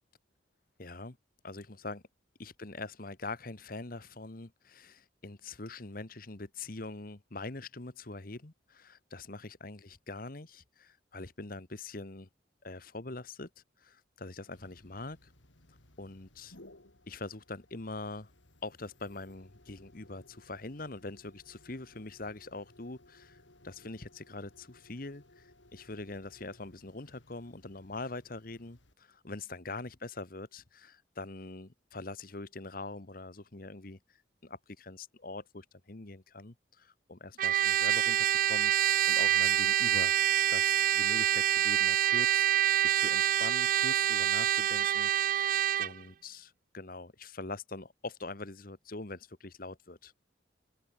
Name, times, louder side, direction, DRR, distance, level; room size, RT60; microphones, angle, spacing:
voice 1, 0.8-1.2 1.4-2.0 2.4-12.3 12.6-15.3 15.7-16.6 17.1-18.3 18.6-40.2 40.5-45.5 45.8-50.1, left 2 dB, 50° left, 1.3 m, -43 dB
sound 1, 14.5-28.9, left 1 dB, 80° left, 4.1 m, -61 dB
Trumpet, 37.4-45.9, right 12 dB, 45° right, 0.4 m, -26 dB
head